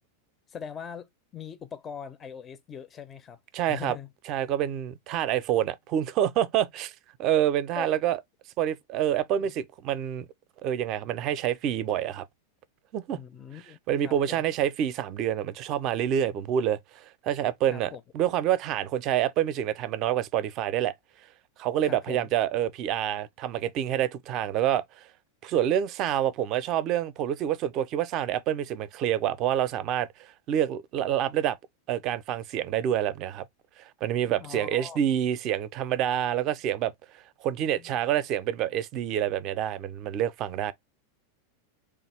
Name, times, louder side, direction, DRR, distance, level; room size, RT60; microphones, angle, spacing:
voice 1, 0.5-3.4 3.6-4.1 7.8-7.9 9.4-9.5 13.1-13.8 14.0-14.4 17.7-18.0 21.8-22.3 34.2-35.0 37.8-37.9, left 7 dB, 25° left, 0.4 m, -41 dB
voice 2, 3.5-4.0 4.3-6.9 7.2-8.2 8.6-10.3 10.6-12.2 12.9-13.2 13.9-20.9 21.6-24.8 25.4-31.6 31.9-33.5 34.0-36.9 37.4-40.7, right 10 dB, 40° right, 0.4 m, -27 dB
3.3 x 2.3 x 3.3 m
figure-of-eight pair, 90°, 0 cm